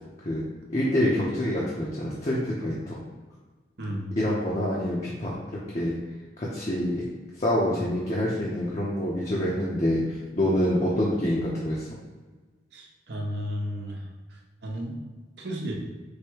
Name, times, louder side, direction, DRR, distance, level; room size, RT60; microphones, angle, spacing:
voice 1, 0.7-3.0 4.2-5.3 5.7-6.0 6.4-7.0 7.4-11.9, left 1 dB, 35° left, -6 dB, 0.7 m, -26 dB
voice 2, 3.8-4.1 12.7-15.0 15.4-15.7, equal, 65° right, 0 dB, 0.8 m, -34 dB
4.8 x 2.2 x 4.5 m, 1.3 s
head